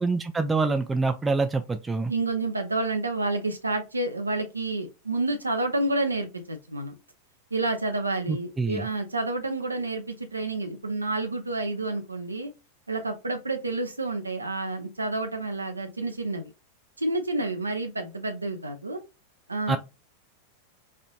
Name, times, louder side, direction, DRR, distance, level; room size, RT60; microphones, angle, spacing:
voice 1, 0.0-2.1 8.3-8.9 19.7-19.8, right 3 dB, 10° right, 6 dB, 0.3 m, -26 dB
voice 2, 2.1-6.9 7.5-12.5 12.9-16.5 17.0-19.0 19.5-19.8, right 2 dB, 80° right, 5 dB, 0.5 m, -29 dB
4.3 x 2.5 x 2.3 m, 0.27 s
figure-of-eight pair, 90°, 0 cm